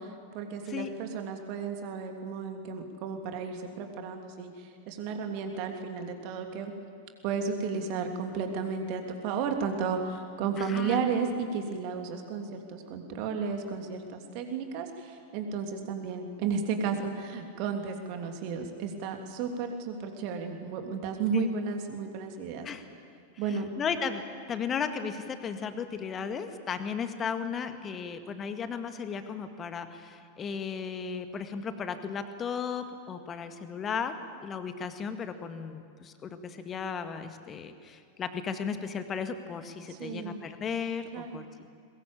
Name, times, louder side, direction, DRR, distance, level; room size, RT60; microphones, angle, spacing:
voice 1, 0.0-6.7 7.2-22.7 23.4-23.7 39.9-40.4 41.1-41.4, right 5 dB, 45° right, 4 dB, 3.2 m, -33 dB
voice 2, 10.6-11.0 21.3-21.5 22.6-22.8 23.5-34.2 34.4-41.7, left 6 dB, 25° left, 8 dB, 1.9 m, -35 dB
22.5 x 21.0 x 8.9 m, 2.3 s
figure-of-eight pair, 90°, 0 cm